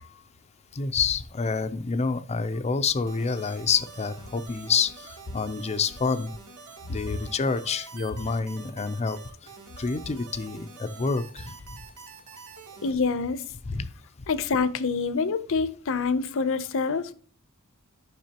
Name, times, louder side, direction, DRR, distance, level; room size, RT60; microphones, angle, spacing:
voice 1, 0.7-6.3 6.9-9.2 9.8-11.5 13.6-13.9, left 5 dB, 30° left, 0.5 m, -28 dB
sound 1, 3.1-12.9, right 5 dB, 90° right, 1.3 m, -46 dB
voice 2, 12.8-13.4 14.3-17.1, left 4 dB, 65° left, 0.7 m, -26 dB
10.5 x 5.9 x 2.9 m
head